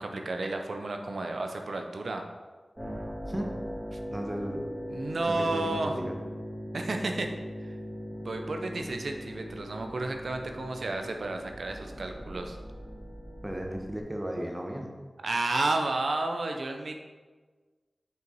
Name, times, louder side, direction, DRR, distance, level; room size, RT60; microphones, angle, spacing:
voice 1, 0.0-2.2 4.9-5.9 6.7-7.3 7.6-7.7 8.2-12.6 15.2-17.0, right 2 dB, 80° right, 4 dB, 0.6 m, -32 dB
sound 1, 2.8-14.0, equal, 5° right, 1.7 m, -40 dB
voice 2, 4.1-4.6 5.3-6.1 13.4-14.9, right 1 dB, 25° right, 2 dB, 1.0 m, -35 dB
5.5 x 4.6 x 4.0 m, 1.4 s
cardioid pair, 50°, 0 cm